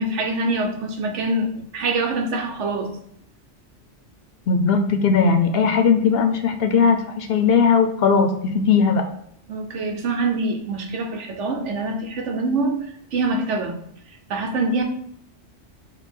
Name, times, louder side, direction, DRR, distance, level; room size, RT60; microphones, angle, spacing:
voice 1, 0.0-3.0 9.5-13.8 14.3-14.8, right 2 dB, 85° right, 4 dB, 1.1 m, -25 dB
voice 2, 4.5-9.0, left 5 dB, 65° left, 6 dB, 0.7 m, -18 dB
5.3 x 2.2 x 4.4 m, 0.69 s
omnidirectional pair, 1.2 m